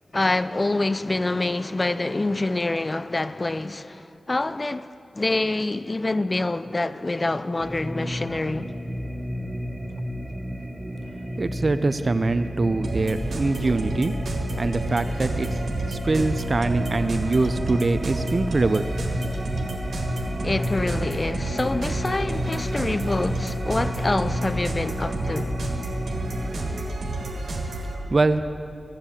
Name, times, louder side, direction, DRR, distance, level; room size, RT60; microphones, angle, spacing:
voice 1, 0.1-8.7 20.4-25.7, left 2 dB, 35° left, 0.4 m, -26 dB
sound 1, 7.6-26.9, equal, 15° right, 1.0 m, -32 dB
voice 2, 11.4-14.2 14.6-15.6 15.9-18.9 28.1-28.4, right 3 dB, 50° right, 0.4 m, -23 dB
sound 2, 12.8-27.9, right 2 dB, 90° right, 1.6 m, -31 dB
12.0 x 8.9 x 7.1 m
cardioid pair, 55°, 0 cm